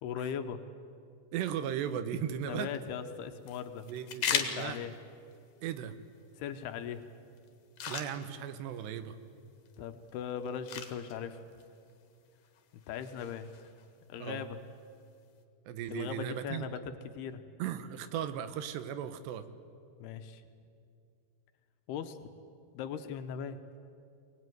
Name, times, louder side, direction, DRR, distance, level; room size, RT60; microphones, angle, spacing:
voice 1, 0.0-0.6 2.5-3.8 4.3-4.9 6.4-7.1 9.8-11.4 12.9-13.7 14.1-14.6 15.9-17.4 20.0-20.4 21.9-22.2 22.7-23.6, left 8 dB, 75° left, 9 dB, 2.8 m, -39 dB
voice 2, 1.3-2.7 3.9-4.8 5.6-5.9 7.9-9.2 14.2-14.4 15.7-16.7 17.6-19.4, right 9 dB, 80° right, 11 dB, 3.2 m, -36 dB
sound 1, 2.4-15.4, left 8 dB, 60° left, 2.7 m, -42 dB
23.5 x 20.0 x 9.3 m, 2.4 s
omnidirectional pair, 4.9 m